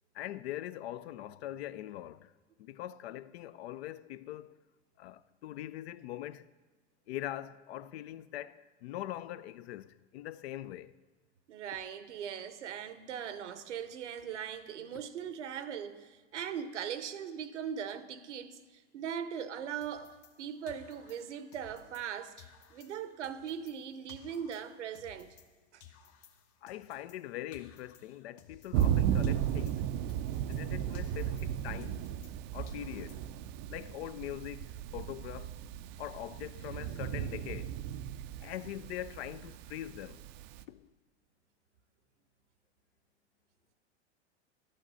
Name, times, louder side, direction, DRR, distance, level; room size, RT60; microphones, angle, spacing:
voice 1, 0.1-2.3 2.6-4.6 5.0-6.5 7.1-11.0 26.6-29.8 30.5-32.0 32.5-33.2 33.7-35.5 36.0-37.8 38.4-40.2 40.7-40.9, left 13 dB, 65° left, 0.5 m, -42 dB
voice 2, 11.5-25.4 25.7-25.8, right 8 dB, 80° right, 0.8 m, -40 dB
sound 1, 19.8-22.1 22.4-25.5 25.8-29.0 29.2-32.4 32.7-33.5, left 8 dB, 40° left, 0.9 m, -58 dB
Thunder, 28.7-40.6, right 10 dB, 40° right, 0.4 m, -35 dB
11.0 x 6.4 x 6.3 m
hypercardioid pair, 105°, 35 cm